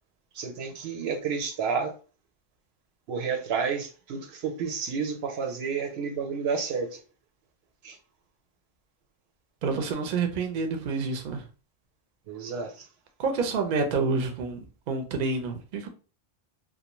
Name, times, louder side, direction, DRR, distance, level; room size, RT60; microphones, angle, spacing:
voice 1, 0.3-2.0 3.1-7.0 7.8-8.0 12.3-12.9, right 5 dB, 85° right, 0.8 m, -30 dB
voice 2, 9.6-11.4 13.2-15.9, right 4 dB, 55° right, 0.6 m, -28 dB
2.5 x 2.1 x 2.9 m
omnidirectional pair, 1.0 m